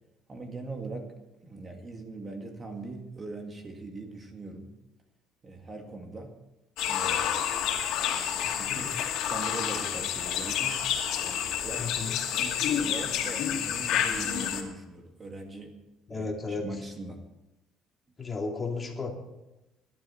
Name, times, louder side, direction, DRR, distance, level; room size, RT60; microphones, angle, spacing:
voice 1, 0.3-1.1 1.4-4.7 5.4-6.4 6.8-7.4 8.3-10.9 11.2-11.9 12.3-15.8 16.1-17.3, right 3 dB, 25° right, 3 dB, 2.0 m, -41 dB
sound 1, 6.8-14.6, left 9 dB, 75° left, 2.4 m, -29 dB
voice 2, 8.4-8.9 11.8-12.2 16.1-16.7 18.2-19.1, left 3 dB, 25° left, 1 dB, 2.6 m, -34 dB
20.5 x 12.0 x 4.4 m, 0.99 s
cardioid pair, 140°, 0 cm